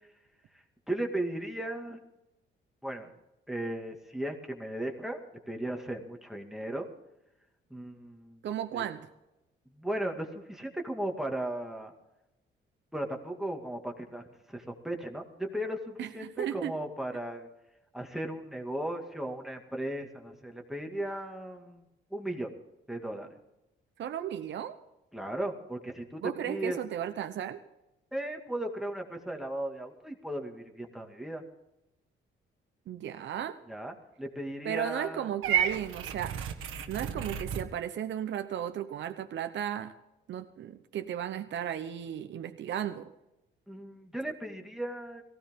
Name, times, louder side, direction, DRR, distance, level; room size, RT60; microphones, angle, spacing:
voice 1, 0.5-2.0 2.8-3.1 3.5-6.9 7.7-8.4 8.7-8.8 9.7-11.9 12.9-17.5 17.9-21.9 22.1-22.5 22.9-23.4 25.1-26.2 26.5-26.8 28.1-31.4 33.7-35.3 36.8-37.3 43.7-45.2, right 1 dB, ahead, 3 dB, 2.2 m, -36 dB
voice 2, 8.4-9.1 16.0-16.8 24.0-24.8 26.2-27.6 32.9-33.6 34.6-36.4 36.9-39.9 40.3-43.1, right 10 dB, 65° right, 8 dB, 1.0 m, -35 dB
Purr / Meow, 35.4-37.7, right 8 dB, 90° right, 1.7 m, -31 dB
18.5 x 16.0 x 3.7 m, 0.93 s
cardioid pair, 90°, 20 cm